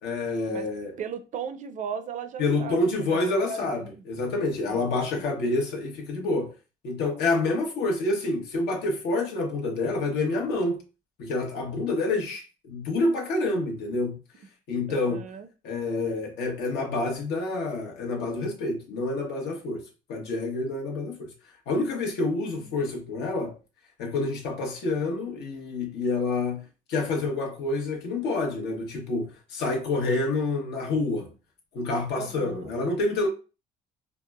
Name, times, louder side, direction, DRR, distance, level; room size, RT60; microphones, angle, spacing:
voice 1, 0.0-0.9 2.4-6.5 6.8-10.8 11.2-14.2 14.7-15.2 15.6-19.8 20.1-21.3 21.7-23.6 24.0-31.3 31.7-33.3, left 2 dB, 75° left, 1.0 m, -28 dB
voice 2, 1.0-4.0 4.6-5.2 14.9-15.5 22.5-22.8 32.2-32.7, right 6 dB, 45° right, 0.5 m, -37 dB
4.7 x 2.0 x 2.3 m
cardioid pair, 110°, 17 cm